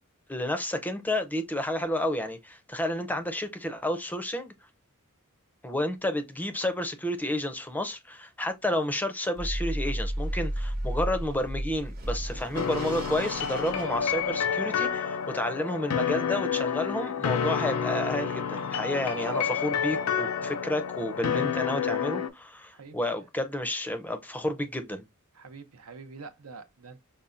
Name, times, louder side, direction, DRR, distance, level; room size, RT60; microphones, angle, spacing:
voice 1, 0.3-4.5 5.6-25.1, left 1 dB, 10° left, 0.5 m, -31 dB
sound 1, 9.4-14.7, right 1 dB, 45° right, 0.8 m, -33 dB
sound 2, 12.5-22.3, left 7 dB, 90° left, 0.4 m, -29 dB
voice 2, 22.7-23.1 25.3-27.0, right 4 dB, 85° right, 0.7 m, -46 dB
5.4 x 2.2 x 2.5 m
head